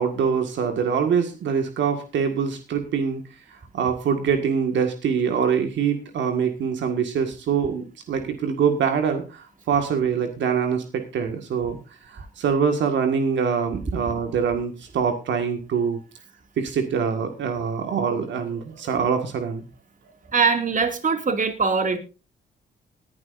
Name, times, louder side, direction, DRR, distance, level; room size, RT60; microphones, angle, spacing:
voice 1, 0.0-3.2 3.7-11.8 12.0-16.0 16.6-19.7, right 6 dB, 80° right, 6 dB, 1.8 m, -24 dB
voice 2, 20.3-22.0, right 5 dB, 45° right, 6 dB, 2.4 m, -22 dB
20.0 x 11.0 x 2.6 m, 0.30 s
cardioid pair, 75°, 19 cm